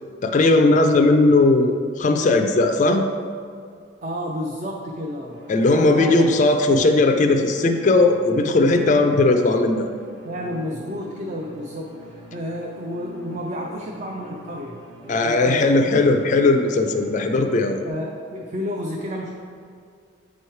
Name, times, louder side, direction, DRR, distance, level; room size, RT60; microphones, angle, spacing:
voice 1, 0.2-3.0 5.5-9.9 15.1-17.8, left 2 dB, 40° left, 5 dB, 0.3 m, -18 dB
voice 2, 4.0-6.3 8.8-9.2 10.2-14.8 15.0-15.9 17.9-19.3, equal, 35° right, -1 dB, 0.5 m, -31 dB
sound 1, 5.3-17.9, equal, 65° right, 1.1 m, -43 dB
8.4 x 3.1 x 4.5 m, 2.2 s
head